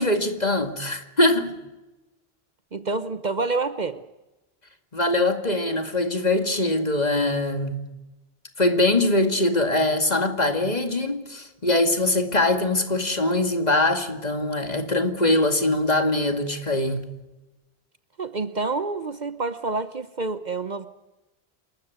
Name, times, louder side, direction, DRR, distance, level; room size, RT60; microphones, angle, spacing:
voice 1, 0.0-1.5 4.9-7.8 8.6-17.1, left 2 dB, 40° left, 2.3 m, -22 dB
voice 2, 2.7-4.0 18.2-20.9, right 3 dB, 45° right, 1.0 m, -28 dB
28.0 x 14.0 x 9.4 m
omnidirectional pair, 1.1 m